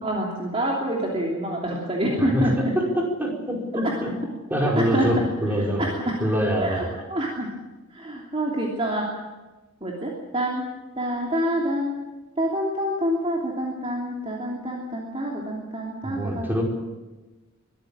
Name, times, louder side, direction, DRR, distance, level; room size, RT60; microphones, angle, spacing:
voice 1, 0.0-2.7 3.8-3.9 4.6-5.3 5.6-6.2 6.6-7.5 7.9-9.0 9.8-10.6 10.9-11.9 12.4-16.6, equal, 25° right, -2 dB, 3.0 m, -27 dB
voice 2, 2.2-2.5 2.9-4.1 4.5-5.8 6.2-6.8 16.0-16.6, equal, 10° right, -2 dB, 5.1 m, -24 dB
23.5 x 14.0 x 8.8 m, 1.2 s
head